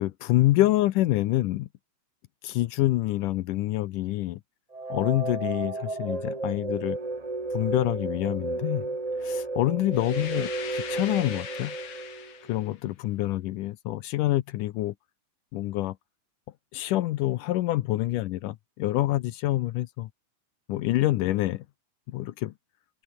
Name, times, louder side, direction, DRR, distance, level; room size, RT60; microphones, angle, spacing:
voice 1, 0.0-1.7 2.4-4.4 4.9-7.0 7.5-8.9 9.2-11.8 12.5-14.9 15.5-16.0 16.7-20.1 20.7-21.6 22.1-22.5, left 16 dB, 75° left, 2.1 m, -26 dB
sound 1, 4.7-12.7, right 3 dB, 45° right, 0.4 m, -33 dB
sound 2, 9.9-12.7, left 8 dB, 45° left, 2.6 m, -40 dB
omnidirectional pair, 4.1 m